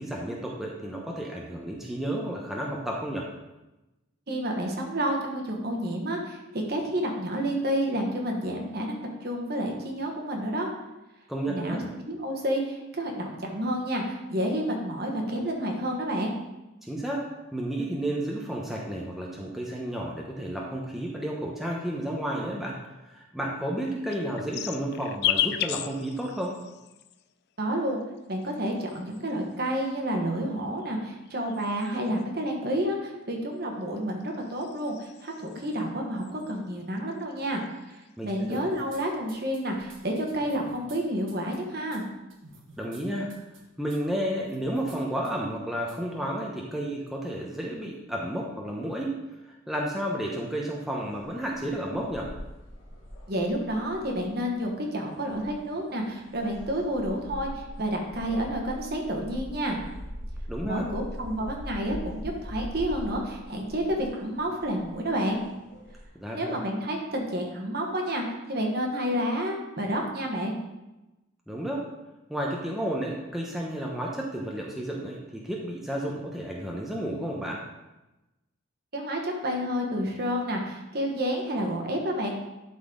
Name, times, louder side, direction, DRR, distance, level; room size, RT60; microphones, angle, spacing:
voice 1, 0.0-3.3 11.3-11.9 16.8-22.8 23.1-26.6 38.2-38.7 42.8-43.4 43.8-49.1 49.5-52.3 60.5-60.9 66.1-66.6 71.5-71.9 72.3-77.6, right 1 dB, ahead, -3 dB, 0.8 m, -32 dB
voice 2, 4.3-10.7 11.5-11.8 12.1-16.4 27.6-28.0 28.3-37.6 37.9-42.0 53.3-59.8 60.6-65.4 66.3-70.5 78.9-82.3, equal, 50° right, 1 dB, 1.3 m, -30 dB
sound 1, 23.8-27.2 28.2-29.5 30.4-32.2 33.6-35.8 36.2-36.7 37.0-38.1 38.4-39.0, left 11 dB, 50° left, 0.3 m, -34 dB
sound 2, 38.4-39.0 39.3-41.0 41.3-41.6 41.9-42.0 42.3-43.0 43.3-43.6 43.9-44.0 44.4-45.0 45.2-45.3 45.9-46.0, right 3 dB, 70° right, 1.4 m, -51 dB
sound 3, 51.0-66.0, equal, 70° left, 1.5 m, -42 dB
11.5 x 4.2 x 3.8 m, 1.0 s
head